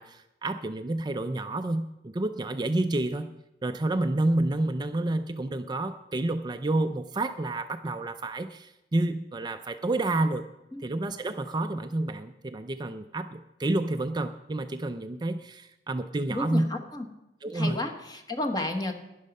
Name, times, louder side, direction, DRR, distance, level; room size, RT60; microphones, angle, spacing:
voice 1, 0.0-3.3 3.6-10.4 10.8-16.7 17.4-17.8, right 2 dB, 25° right, 8 dB, 0.4 m, -29 dB
voice 2, 16.3-17.1 17.5-18.9, left 2 dB, 25° left, 5 dB, 1.3 m, -31 dB
12.0 x 10.0 x 5.3 m, 0.93 s
head